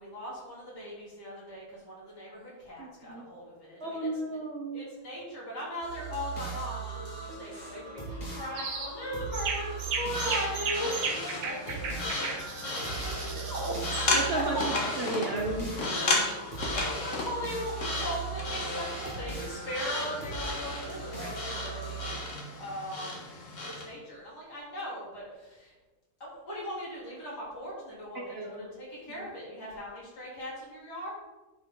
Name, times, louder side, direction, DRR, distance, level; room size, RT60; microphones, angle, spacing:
voice 1, 0.0-4.4 4.7-14.7 16.5-23.4 23.6-25.7 26.2-31.1, equal, 75° left, -7 dB, 4.0 m, -39 dB
voice 2, 2.8-3.2 3.8-4.9 14.1-16.3 28.3-28.6, right 2 dB, 45° right, 0 dB, 1.0 m, -34 dB
sound 1, 5.8-22.1, right 4 dB, 25° left, 2.3 m, -39 dB
sound 2, 8.6-8.9 9.3-14.1, right 5 dB, 80° right, 1.6 m, -35 dB
sound 3, 10.0-23.9, left 2 dB, 50° left, 1.8 m, -34 dB
10.5 x 5.6 x 3.9 m, 1.1 s
omnidirectional pair, 1.8 m